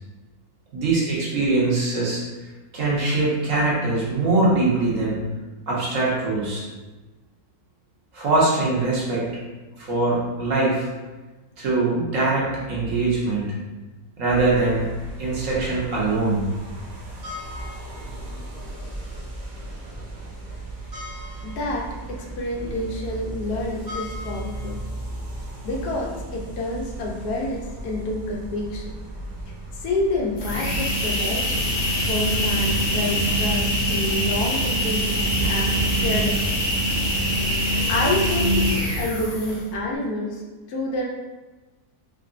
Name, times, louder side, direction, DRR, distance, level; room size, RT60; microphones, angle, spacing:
voice 1, 0.7-2.2 2.7-5.2 5.7-6.6 8.1-9.3 9.8-10.9 11.6-13.5 14.2-14.9 15.2-16.5 22.6-22.7, right 2 dB, 60° right, -5 dB, 1.2 m, -22 dB
sound 1, 14.2-33.1, right 1 dB, 90° right, 0.3 m, -36 dB
voice 2, 21.4-24.8 25.4-28.9 29.7-31.6 32.1-36.5 37.9-38.6 39.0-40.4 40.7-41.1, left 2 dB, 75° left, -1 dB, 1.2 m, -28 dB
sound 2, 30.4-39.7, equal, 55° left, 0.9 m, -23 dB
3.7 x 3.1 x 2.4 m, 1.2 s
omnidirectional pair, 1.7 m